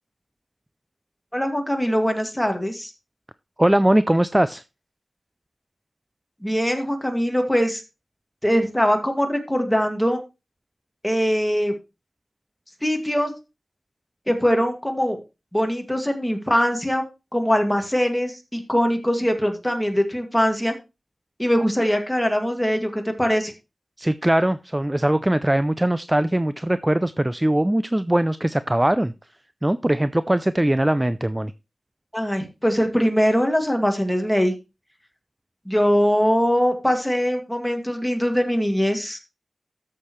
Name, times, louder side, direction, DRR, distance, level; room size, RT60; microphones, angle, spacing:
voice 1, 1.3-2.9 6.4-7.8 8.4-10.2 11.0-11.7 12.8-13.3 14.3-15.2 15.5-17.0 17.3-20.7 21.4-23.5 32.1-34.5 35.7-39.2, equal, 5° left, 4 dB, 2.1 m, -22 dB
voice 2, 3.6-4.6 24.0-29.1 29.6-31.5, right 1 dB, 15° right, 14 dB, 0.4 m, -21 dB
13.0 x 6.6 x 3.1 m, 0.27 s
wide cardioid pair, 85°, 0 cm